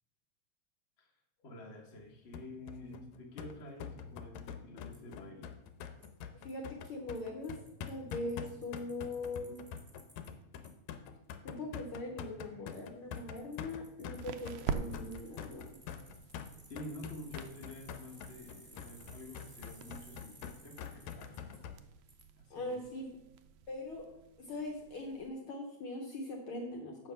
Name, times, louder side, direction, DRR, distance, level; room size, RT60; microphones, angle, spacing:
voice 1, 1.4-5.6 16.7-21.7 22.5-22.8, left 1 dB, 45° left, 0 dB, 0.8 m, -49 dB
sound 1, 2.3-21.8, left 8 dB, 85° left, 2.0 m, -45 dB
Bicycle, 4.9-5.0 6.0-6.1 6.5-6.6 6.8-6.9 7.1-7.2 7.4-10.3 10.6-10.7 12.7-12.8 13.1-21.6 22.1-22.2, right 1 dB, 15° right, 1.2 m, -59 dB
voice 2, 6.4-7.5 7.9-9.6 11.4-15.8 22.5-23.1 23.7-24.1 24.4-27.1, left 2 dB, 65° left, 1 dB, 1.4 m, -41 dB
sound 2, 12.9-25.3, right 7 dB, 80° right, 1.5 m, -47 dB
8.0 x 5.7 x 5.6 m, 0.88 s
omnidirectional pair, 3.3 m